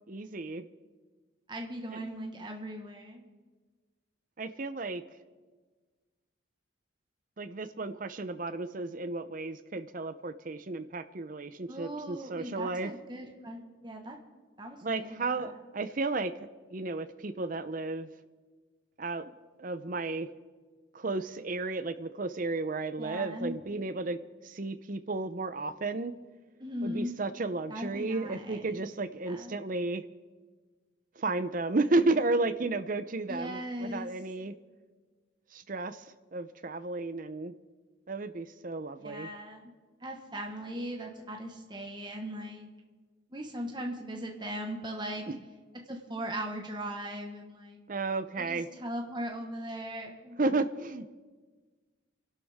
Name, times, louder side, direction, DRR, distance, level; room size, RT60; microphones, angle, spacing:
voice 1, 0.1-0.7 1.9-2.0 4.4-5.0 7.4-12.9 14.8-16.3 16.7-18.1 19.0-20.3 20.9-24.2 24.4-26.1 26.8-30.0 31.2-34.5 35.5-36.1 36.3-37.5 38.1-39.3 45.3-45.4 47.9-48.7 50.4-51.1, right 3 dB, 45° right, 11 dB, 0.6 m, -33 dB
voice 2, 1.5-3.3 11.7-14.2 14.6-15.6 23.0-23.6 26.6-27.1 27.7-28.8 29.3-29.5 33.3-34.1 39.0-39.6 40.0-42.7 43.3-45.3 45.9-47.8 48.4-50.4, equal, 25° right, 1 dB, 1.4 m, -39 dB
28.5 x 11.5 x 3.6 m, 1.4 s
head